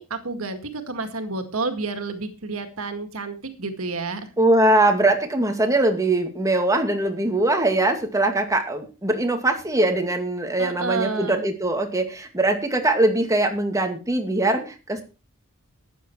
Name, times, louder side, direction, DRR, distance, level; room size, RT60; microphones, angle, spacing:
voice 1, 0.0-4.3 10.6-11.4, right 3 dB, 85° right, 8 dB, 2.0 m, -30 dB
voice 2, 4.4-15.0, right 2 dB, 15° right, 5 dB, 2.3 m, -21 dB
13.5 x 9.7 x 4.6 m, 0.33 s
head